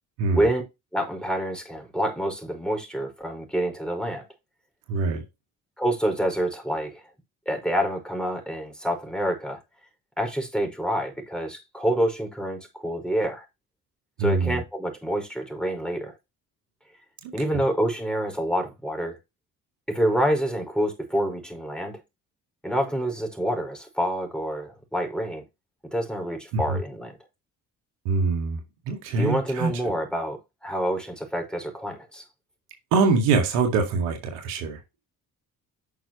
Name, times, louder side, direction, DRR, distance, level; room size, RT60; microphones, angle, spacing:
voice 1, 0.9-4.2 5.8-7.0 7.4-9.6 10.2-13.4 14.2-16.1 17.3-19.2 19.9-22.0 22.6-25.4 25.9-27.2 29.2-32.2, right 1 dB, ahead, 5.1 m, -27 dB
voice 2, 4.9-5.2 14.2-14.6 17.2-17.3 26.5-26.8 28.1-28.6 28.9-29.7 32.9-34.8, right 4 dB, 85° right, 2.1 m, -24 dB
9.5 x 6.2 x 3.1 m
hypercardioid pair, 55°, 43 cm